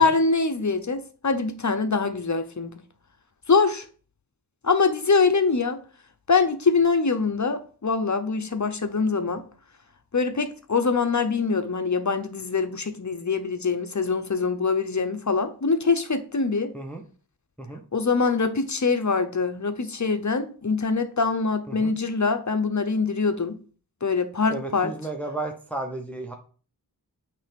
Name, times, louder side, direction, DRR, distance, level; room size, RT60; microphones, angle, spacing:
voice 1, 0.0-2.7 3.5-3.8 4.6-5.8 6.3-9.4 10.1-16.7 17.9-23.6 24.0-24.9, left 4 dB, 45° left, 0.8 m, -24 dB
voice 2, 24.5-26.3, right 2 dB, 5° left, 1.0 m, -33 dB
8.6 x 3.4 x 5.3 m
wide cardioid pair, 75°, 39 cm